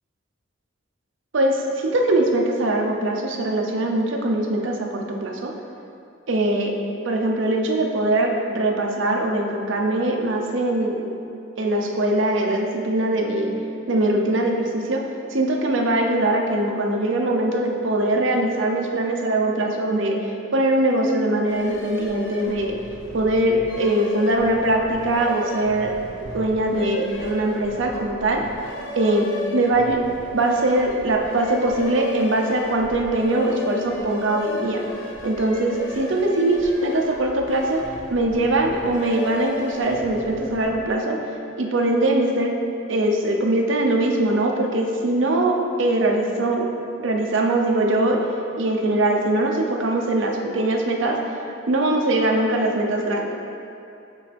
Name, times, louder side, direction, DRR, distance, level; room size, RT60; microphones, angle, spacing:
voice 1, 1.3-5.5 6.3-6.7 7.0-11.1 11.6-13.6 13.9-22.8 23.1-25.9 26.2-28.4 29.0-30.0 30.3-34.8 35.2-41.2 41.6-42.5 42.9-46.7 47.0-48.2 48.6-51.2 51.7-53.3, right 1 dB, 85° right, 1 dB, 0.7 m, -22 dB
sound 1, 21.5-40.9, left 1 dB, 75° left, 0.9 m, -36 dB
8.3 x 4.0 x 3.4 m, 2.7 s
head